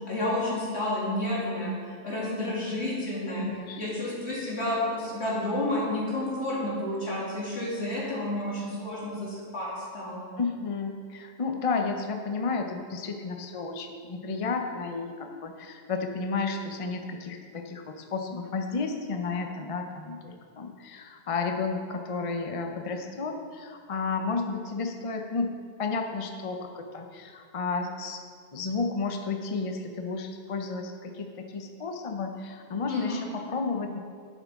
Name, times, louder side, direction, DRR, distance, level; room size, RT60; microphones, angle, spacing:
voice 1, 0.1-3.4 3.8-10.3 32.9-33.3, left 1 dB, 70° left, -7 dB, 2.9 m, -30 dB
voice 2, 3.4-3.8 10.4-25.5 25.8-28.2 28.5-34.0, left 4 dB, 40° left, 4 dB, 0.6 m, -32 dB
11.0 x 7.4 x 3.6 m, 2.1 s
omnidirectional pair, 1.2 m